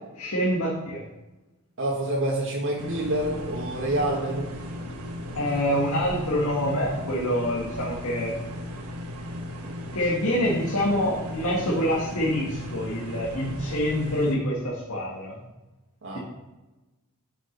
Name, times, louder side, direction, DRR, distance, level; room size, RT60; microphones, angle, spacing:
voice 1, 0.2-1.0 5.4-8.4 9.9-15.4 16.1-16.2, equal, 70° left, -5 dB, 1.8 m, -26 dB
voice 2, 1.8-4.5 16.0-16.2, right 1 dB, 60° right, -2 dB, 1.8 m, -27 dB
sound 1, 2.8-14.4, left 1 dB, 75° right, 1.4 m, -36 dB
9.9 x 6.3 x 5.3 m, 1.1 s
head